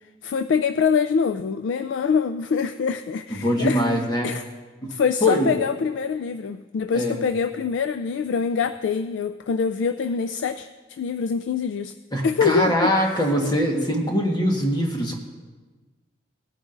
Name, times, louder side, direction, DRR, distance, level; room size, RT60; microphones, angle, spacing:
voice 1, 0.2-3.8 4.2-4.4 4.9-11.9 12.2-13.2, left 6 dB, 85° left, 8 dB, 0.3 m, -24 dB
voice 2, 3.3-4.3 4.8-4.9 5.2-5.5 6.9-7.2 12.1-15.2, equal, 25° left, 0 dB, 1.3 m, -22 dB
18.0 x 9.9 x 2.6 m, 1.3 s
head